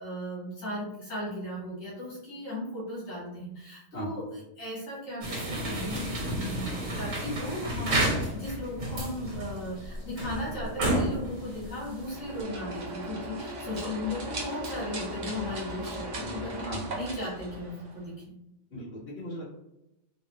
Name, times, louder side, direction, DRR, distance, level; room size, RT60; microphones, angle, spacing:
voice 1, 0.0-8.0 8.3-18.4, left 1 dB, 75° left, -6 dB, 1.7 m, -36 dB
sound 1, 5.2-12.4, right 1 dB, 75° right, 1.5 m, -31 dB
sound 2, 12.0-18.1, right 1 dB, 45° right, 0.7 m, -37 dB
voice 2, 18.7-19.6, equal, 35° left, -9 dB, 1.7 m, -38 dB
4.1 x 2.2 x 2.9 m, 0.88 s
omnidirectional pair, 1.4 m